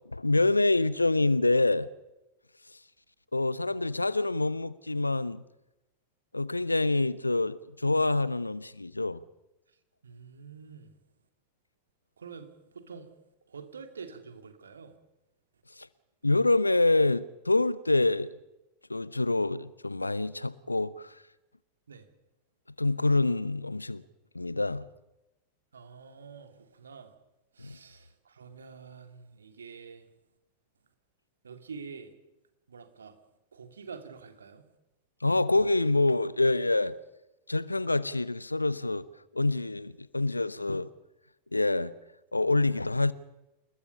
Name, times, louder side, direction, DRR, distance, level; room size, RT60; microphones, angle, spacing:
voice 1, 0.1-1.9 3.3-5.4 6.3-9.2 15.8-15.9 16.2-18.3 18.9-21.2 22.8-24.0 24.3-24.8 27.6-27.8 35.2-36.9 37.5-39.1 39.3-40.9 41.5-41.9 42.3-43.1, left 2 dB, 85° left, 0.8 m, -26 dB
voice 2, 10.0-10.9 12.2-13.1 13.5-15.0 21.9-22.1 25.7-27.1 27.6-30.1 31.4-32.1 32.7-33.2 33.5-34.6, right 5 dB, 70° right, 2.6 m, -47 dB
28.5 x 21.0 x 5.5 m
figure-of-eight pair, 90°, 0 cm